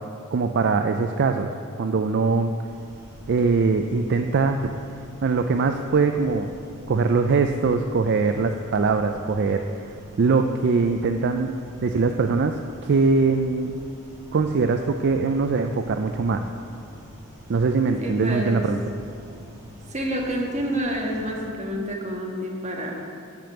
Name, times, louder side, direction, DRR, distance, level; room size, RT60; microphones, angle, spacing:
voice 1, 0.3-1.5 1.8-2.5 3.3-4.7 5.2-6.5 6.9-11.5 11.8-13.7 14.3-16.5 17.5-18.8, right 4 dB, 50° right, 6 dB, 0.4 m, -22 dB
sound 1, 2.6-21.5, equal, 15° right, 2.2 m, -46 dB
voice 2, 18.0-18.7 19.9-22.9, right 1 dB, 30° right, -1 dB, 1.5 m, -28 dB
11.5 x 5.2 x 7.6 m, 2.4 s
head